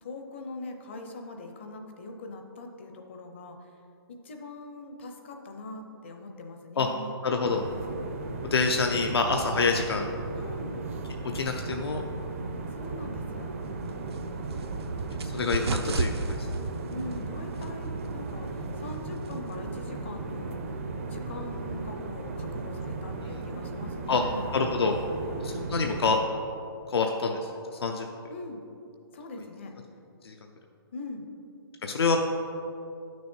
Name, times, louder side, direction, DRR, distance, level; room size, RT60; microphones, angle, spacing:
voice 1, 0.0-3.6 4.1-7.2 10.3-10.8 12.7-13.7 16.9-20.6 21.1-24.5 25.1-25.5 28.3-28.6 29.1-29.7 30.9-31.3, left 2 dB, 30° left, 4 dB, 0.6 m, -41 dB
voice 2, 7.2-7.7 8.4-10.1 11.3-12.0 15.2-16.5 23.2-23.4 24.1-24.2 24.5-25.0 25.4-26.2 26.9-28.1 30.2-30.3 31.8-32.2, left 4 dB, 75° left, 3 dB, 0.7 m, -27 dB
sound 1, 7.4-26.2, right 3 dB, 30° right, 0.5 m, -36 dB
sound 2, 13.6-19.7, right 4 dB, 90° right, 0.7 m, -35 dB
9.9 x 6.2 x 4.4 m, 2.7 s
hypercardioid pair, 175°, 13 cm